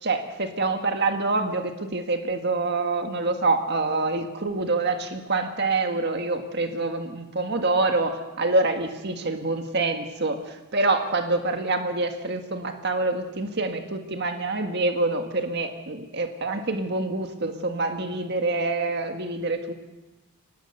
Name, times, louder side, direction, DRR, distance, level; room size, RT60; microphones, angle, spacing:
voice 1, 0.0-19.7, right 3 dB, 50° right, 6 dB, 1.7 m, -26 dB
24.0 x 19.5 x 6.7 m, 1.1 s
head